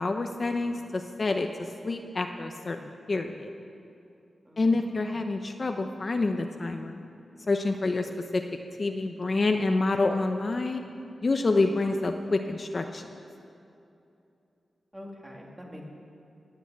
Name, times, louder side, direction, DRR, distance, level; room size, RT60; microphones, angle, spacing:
voice 1, 0.0-3.5 4.6-7.0 7.5-10.8 11.2-13.1, left 3 dB, 40° left, 5 dB, 0.8 m, -28 dB
voice 2, 4.5-5.1 14.9-15.8, left 1 dB, 15° right, -1 dB, 2.6 m, -45 dB
18.5 x 9.1 x 8.1 m, 2.7 s
wide cardioid pair, 115°, 0 cm